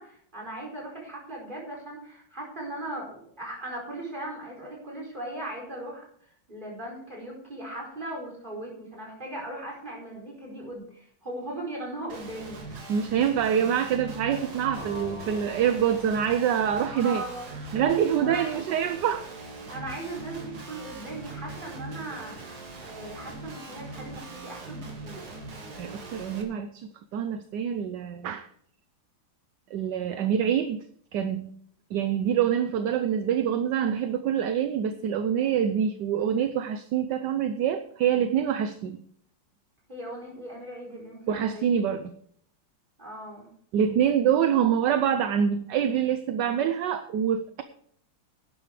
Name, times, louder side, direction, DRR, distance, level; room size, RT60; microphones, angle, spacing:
voice 1, 0.0-6.0 6.5-12.7 16.8-17.5 18.2-18.5 19.7-25.3 39.9-41.6 43.0-43.5, right 1 dB, 20° right, -2 dB, 4.9 m, -38 dB
Guitar, 12.1-26.4, right 2 dB, 50° right, 2.4 m, -41 dB
voice 2, 12.9-17.2 17.7-19.3 25.8-28.5 29.7-30.8 31.1-31.5 31.9-39.0 41.3-42.1 43.7-47.6, right 8 dB, 65° right, 10 dB, 1.2 m, -25 dB
sound 1, 14.7-18.5, equal, 25° left, 6.7 m, -45 dB
12.0 x 10.0 x 4.9 m, 0.63 s
omnidirectional pair, 2.2 m